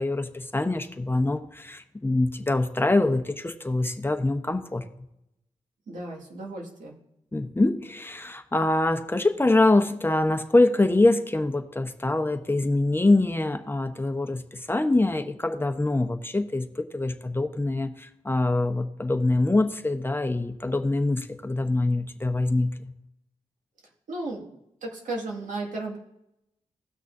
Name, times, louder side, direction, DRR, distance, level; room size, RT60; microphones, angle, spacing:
voice 1, 0.0-4.8 7.3-22.7, left 2 dB, 15° left, 7 dB, 0.9 m, -24 dB
voice 2, 5.9-7.0 24.1-26.0, right 2 dB, 85° right, -1 dB, 2.0 m, -35 dB
17.5 x 6.2 x 2.7 m, 0.83 s
cardioid pair, 65°, 13 cm